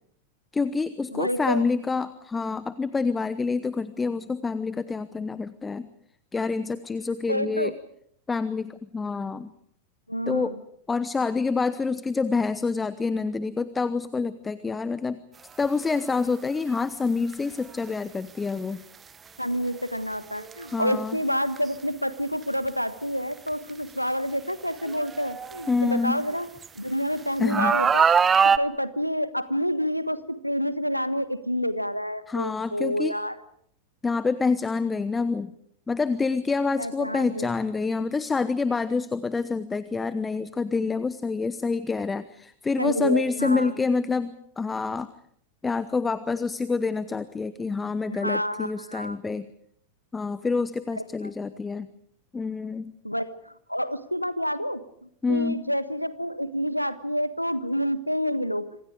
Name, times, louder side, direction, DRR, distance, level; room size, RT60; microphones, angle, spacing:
voice 1, 0.5-5.9 6.3-7.7 8.3-9.5 10.3-10.6 10.9-15.2 15.6-18.8 20.7-21.2 25.7-26.1 27.4-27.7 32.3-33.1 34.0-35.5 35.9-45.1 45.6-49.5 50.1-51.9 52.3-52.9 55.2-55.6, left 4 dB, 15° left, 15 dB, 0.9 m, -27 dB
voice 2, 1.1-1.7 7.3-7.7 10.1-10.6 19.4-26.5 26.7-28.1 28.6-33.4 36.8-37.5 42.8-43.7 48.1-49.2 51.0-51.1 53.0-58.7, equal, 90° left, 13 dB, 1.3 m, -28 dB
sound 1, 15.7-15.9 17.3-17.4 20.4-20.6 21.6-21.7 22.7-22.8 23.5-23.6 24.8-26.7 27.5-28.6, right 6 dB, 20° right, 1.0 m, -22 dB
26.5 x 26.5 x 5.0 m, 0.69 s
figure-of-eight pair, 90°, 0 cm